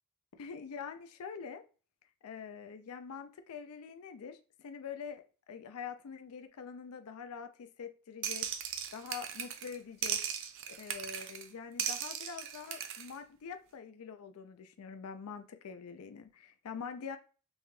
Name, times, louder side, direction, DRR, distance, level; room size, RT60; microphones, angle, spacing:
voice 1, 0.3-1.6 2.2-8.5 8.9-10.2 10.7-17.2, left 6 dB, 80° left, 8 dB, 0.4 m, -45 dB
sound 1, 8.2-9.8 10.0-11.5 11.8-13.1, right 8 dB, 60° right, 0.4 m, -37 dB
5.4 x 2.3 x 3.0 m, 0.37 s
head